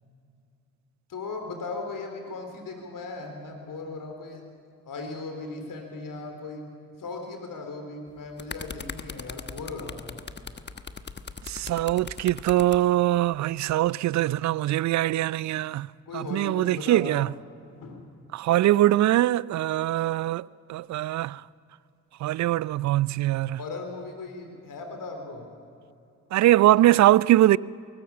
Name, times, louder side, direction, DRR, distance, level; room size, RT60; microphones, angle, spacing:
voice 1, 1.1-4.4 4.8-6.7 7.0-10.1 16.1-17.3 17.6-18.0 23.6-25.4, left 3 dB, 50° left, 3.6 m, -37 dB
sound 1, 8.1-12.8 13.7-13.9, left 5 dB, 25° left, 1.3 m, -39 dB
voice 2, 11.5-15.9 16.1-17.3 18.3-21.4 22.2-23.6 26.3-27.6, right 14 dB, 45° right, 0.5 m, -22 dB
21.0 x 20.0 x 7.3 m
hypercardioid pair, 45°, 43 cm